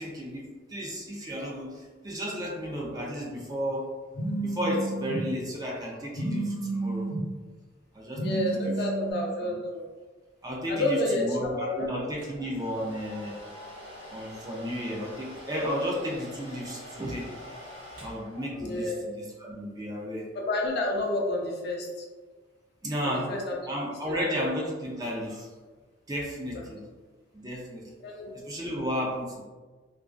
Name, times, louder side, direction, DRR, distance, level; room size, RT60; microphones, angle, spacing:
voice 1, 0.0-3.9 4.4-7.1 7.9-8.2 8.5-8.7 9.4-9.6 10.4-13.4 14.1-17.3 18.0-20.3 22.8-23.3 23.7-25.5 26.1-26.8 27.3-27.8 28.3-29.4, equal, 20° right, -3 dB, 0.4 m, -33 dB
Telephone, 4.1-5.2 6.1-7.2 8.1-9.1, right 2 dB, 80° left, 0.9 m, -31 dB
voice 2, 8.2-9.8 10.7-11.9 18.6-19.0 20.3-22.0 23.0-23.6 28.0-28.3, left 1 dB, 60° left, -1 dB, 0.5 m, -29 dB
Domestic sounds home sounds, 12.2-18.9, equal, 85° right, 0.9 m, -45 dB
2.3 x 2.3 x 2.4 m, 1.3 s
head